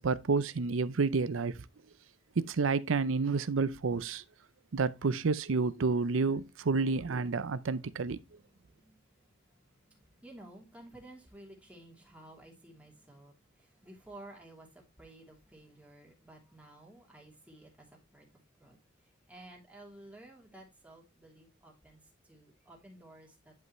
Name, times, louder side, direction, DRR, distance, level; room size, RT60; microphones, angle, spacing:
voice 1, 0.0-1.6 2.4-4.2 4.7-8.2, right 4 dB, 80° right, 0.6 m, -29 dB
voice 2, 7.8-18.8 19.3-23.5, right 1 dB, 5° right, 2.9 m, -54 dB
10.5 x 5.5 x 3.1 m
head